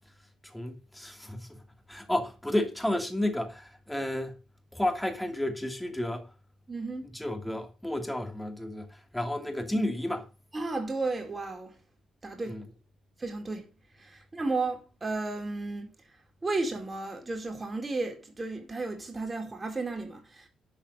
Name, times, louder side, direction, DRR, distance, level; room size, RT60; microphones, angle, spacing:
voice 1, 0.4-1.6 1.9-4.4 4.7-6.3 7.1-10.3 12.5-12.6, left 1 dB, 5° left, 2.7 m, -32 dB
voice 2, 6.7-7.2 10.5-11.8 12.2-12.7 13.2-13.7 14.0-15.9 16.4-20.5, right 3 dB, 25° right, 4.5 m, -33 dB
11.5 x 5.9 x 6.7 m
cardioid pair, 90°, 0 cm